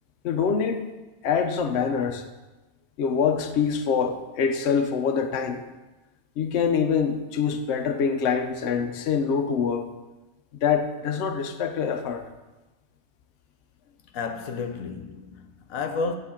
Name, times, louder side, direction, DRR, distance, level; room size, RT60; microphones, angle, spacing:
voice 1, 0.2-0.8 1.2-2.2 3.0-5.6 6.4-9.9 10.6-12.3, left 6 dB, 60° left, 0.9 m, -25 dB
voice 2, 14.1-16.1, left 4 dB, 85° left, 1.2 m, -31 dB
10.0 x 3.6 x 7.1 m
omnidirectional pair, 1.4 m